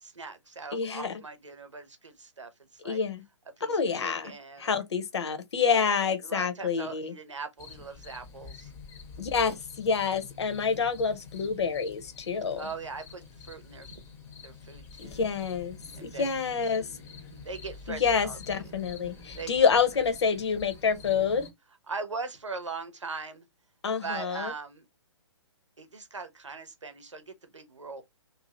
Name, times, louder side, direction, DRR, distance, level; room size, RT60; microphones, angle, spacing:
voice 1, 0.0-3.0 3.6-4.8 5.5-8.7 10.4-10.8 12.6-14.0 14.4-15.3 16.0-17.0 17.4-18.7 19.4-19.7 21.9-23.5 24.0-24.8 25.8-28.0, right 4 dB, 90° right, 0.9 m, -41 dB
voice 2, 0.7-1.1 2.8-3.2 3.7-4.3 4.6-7.1 9.2-12.7 15.0-16.9 17.9-21.5 23.8-24.5, left 6 dB, 65° left, 0.8 m, -28 dB
sound 1, 7.6-21.5, left 4 dB, 15° left, 0.7 m, -47 dB
2.7 x 2.4 x 3.0 m
figure-of-eight pair, 130°, 15 cm